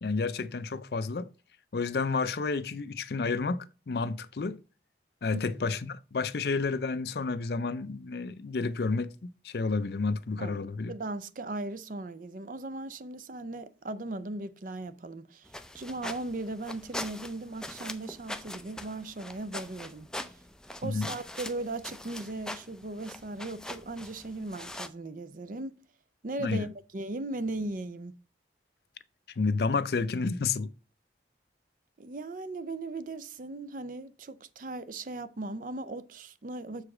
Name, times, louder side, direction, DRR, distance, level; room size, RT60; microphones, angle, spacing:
voice 1, 0.0-1.3 1.7-4.6 5.2-10.9 20.8-21.1 26.4-26.7 29.4-30.7, left 4 dB, 60° left, 0.5 m, -30 dB
voice 2, 10.4-15.5 15.7-20.4 20.8-25.8 26.2-28.1 32.0-36.8, right 2 dB, 50° right, 0.5 m, -38 dB
sound 1, 15.5-24.9, left 1 dB, 5° left, 0.4 m, -42 dB
7.2 x 4.9 x 4.8 m
head